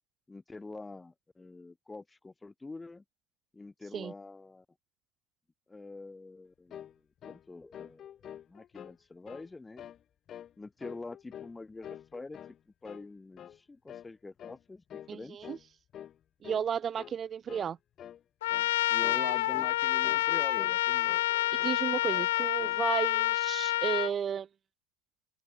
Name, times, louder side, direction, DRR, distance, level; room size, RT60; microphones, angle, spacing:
voice 1, 0.3-3.0 3.5-4.6 5.7-6.8 7.2-8.1 8.5-9.9 10.6-12.4 12.8-15.4 18.9-21.1, left 3 dB, 10° left, 1.6 m, -45 dB
sound 1, 6.7-7.0 7.2-7.5 7.7-9.0 9.3-9.5 9.8-10.0 10.3-10.5 10.8-11.6 11.8-12.6 12.8-13.1 13.4-13.6 13.9-14.1 14.4-14.6 14.9-15.2 15.4-15.6 15.9-16.2 16.4-16.7 17.0-17.2 17.5-17.7 18.0-18.2 18.5-18.7 19.0-19.8 20.0-20.8 21.1-21.8 22.1-22.8, left 10 dB, 30° left, 2.8 m, -47 dB
voice 2, 15.1-15.6 16.4-17.8 21.6-24.5, right 8 dB, 25° right, 1.3 m, -33 dB
Trumpet, 18.4-24.1, left 16 dB, 75° left, 0.6 m, -28 dB
open air
supercardioid pair, 140°, 0 cm